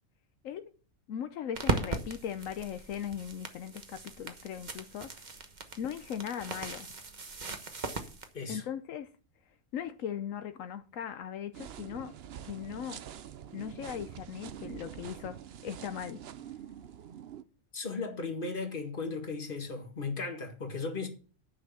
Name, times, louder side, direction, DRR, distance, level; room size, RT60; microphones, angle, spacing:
voice 1, 1.1-5.3 5.8-6.9 8.5-9.1 9.7-12.1 12.5-13.0 13.5-15.4 15.6-16.2, left 9 dB, 80° left, 1.1 m, -38 dB
sound 1, 1.5-8.3, right 3 dB, 35° right, 1.2 m, -38 dB
voice 2, 8.3-8.7 17.7-21.1, left 4 dB, 40° left, 2.0 m, -36 dB
sound 2, 11.5-17.4, right 9 dB, 60° right, 0.8 m, -45 dB
10.5 x 6.1 x 7.0 m
omnidirectional pair, 1.3 m